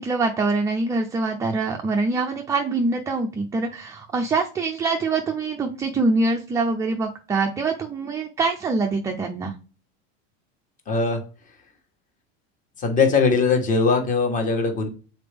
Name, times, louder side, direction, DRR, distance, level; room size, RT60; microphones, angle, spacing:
voice 1, 0.0-9.5, right 3 dB, 10° right, 2 dB, 0.4 m, -24 dB
voice 2, 10.9-11.2 12.8-14.9, left 4 dB, 25° left, 4 dB, 1.3 m, -20 dB
6.8 x 4.1 x 3.4 m, 0.36 s
supercardioid pair, 155°, 32 cm